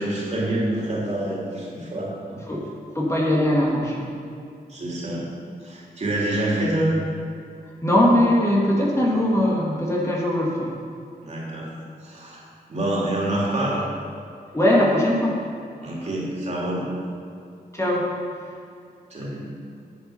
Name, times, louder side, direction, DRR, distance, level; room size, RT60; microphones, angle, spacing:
voice 1, 0.0-2.4 4.7-5.3 5.6-6.9 11.2-11.7 12.0-13.9 15.8-16.9 19.1-19.4, right 1 dB, 45° right, -5 dB, 3.0 m, -27 dB
voice 2, 3.0-4.1 7.8-10.7 14.5-15.4 17.7-18.1, left 1 dB, 15° left, -4 dB, 1.8 m, -20 dB
10.5 x 8.1 x 5.6 m, 2.4 s
wide cardioid pair, 110°, 16 cm